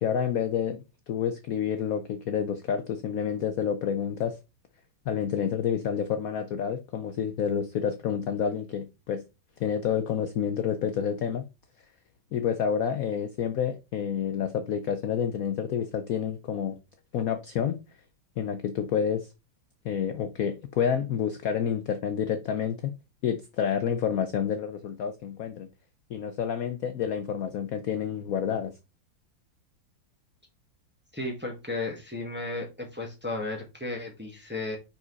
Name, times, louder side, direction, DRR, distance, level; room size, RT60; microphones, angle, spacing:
voice 1, 0.0-4.4 5.1-9.2 9.6-11.4 12.3-16.8 17.1-17.8 18.4-19.3 19.8-22.9 23.2-25.7 26.1-28.7, left 8 dB, 65° left, 0.9 m, -29 dB
voice 2, 31.1-34.8, left 2 dB, 5° right, 1.4 m, -34 dB
5.4 x 5.0 x 3.9 m
omnidirectional pair, 2.0 m